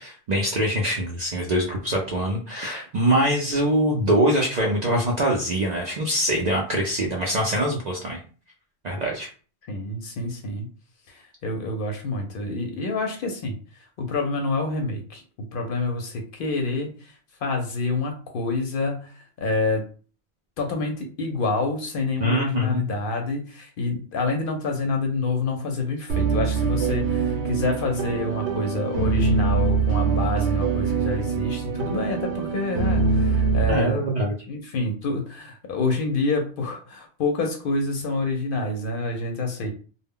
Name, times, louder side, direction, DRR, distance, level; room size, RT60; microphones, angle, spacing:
voice 1, 0.0-8.2 8.8-9.3 22.2-22.8 33.7-34.4, right 1 dB, 55° right, -1 dB, 0.5 m, -23 dB
voice 2, 9.7-10.7 11.1-15.2 15.5-17.1 17.4-19.8 20.6-34.1 34.5-39.7, left 3 dB, 60° left, 3 dB, 0.6 m, -27 dB
sound 1, 26.1-33.7, right 5 dB, 85° right, 0.9 m, -23 dB
2.1 x 2.0 x 3.5 m, 0.39 s
omnidirectional pair, 1.1 m